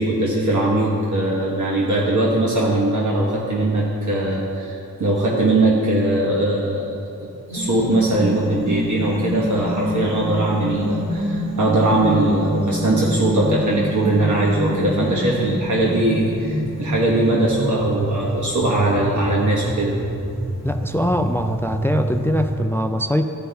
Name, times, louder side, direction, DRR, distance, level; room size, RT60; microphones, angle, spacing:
voice 1, 0.0-7.0 7.5-19.9, right 2 dB, 65° right, -5 dB, 1.3 m, -20 dB
sound 1, 7.5-22.6, equal, 80° right, 1.9 m, -26 dB
voice 2, 20.6-23.3, equal, 10° left, 8 dB, 0.3 m, -22 dB
14.0 x 5.2 x 3.5 m, 2.6 s
wide cardioid pair, 75°, 32 cm